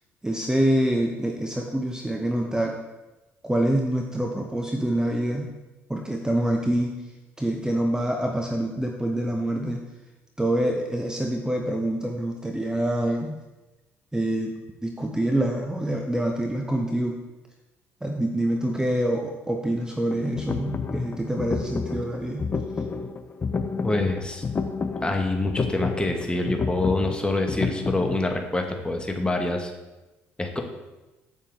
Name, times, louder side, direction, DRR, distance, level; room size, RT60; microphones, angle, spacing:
voice 1, 0.2-2.8 3.4-5.5 5.9-7.0 7.4-9.8 10.4-13.4 14.1-14.5 14.8-17.2 18.0-22.5, right 1 dB, 10° right, 2 dB, 0.9 m, -26 dB
sound 1, 20.1-28.2, left 4 dB, 30° left, 0.6 m, -30 dB
voice 2, 23.8-24.4 25.0-29.7 30.4-30.6, left 2 dB, 15° left, 3 dB, 1.4 m, -26 dB
7.2 x 7.1 x 3.5 m, 1.1 s
hypercardioid pair, 50°, 7 cm